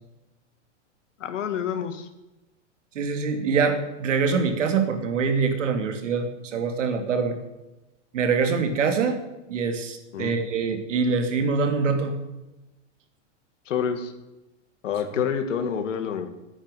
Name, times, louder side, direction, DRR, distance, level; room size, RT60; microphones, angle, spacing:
voice 1, 1.2-2.1 10.1-10.3 13.7-14.1 14.8-16.3, left 7 dB, 80° left, 8 dB, 2.3 m, -28 dB
voice 2, 2.9-7.4 8.1-9.2 9.5-12.2 15.1-15.2, right 5 dB, 80° right, 7 dB, 2.9 m, -24 dB
10.5 x 9.9 x 9.3 m, 1.0 s
supercardioid pair, 155°, 37 cm